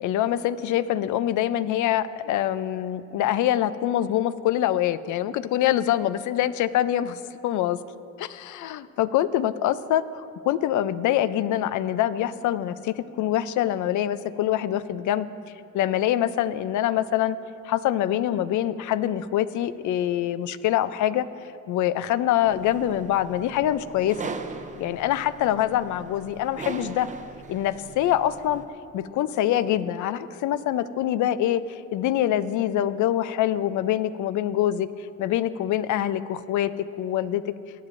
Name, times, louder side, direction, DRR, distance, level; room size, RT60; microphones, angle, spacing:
voice 1, 0.0-7.8 8.2-8.3 8.6-15.3 15.7-17.4 17.6-21.2 21.7-24.2 24.8-27.1 27.5-28.6 28.9-36.7 37.0-37.4, left 12 dB, 80° left, 15 dB, 0.5 m, -25 dB
sound 1, 22.4-28.7, right 4 dB, 25° right, 0.6 m, -40 dB
18.0 x 9.1 x 2.6 m, 2.5 s
cardioid pair, 90°, 30 cm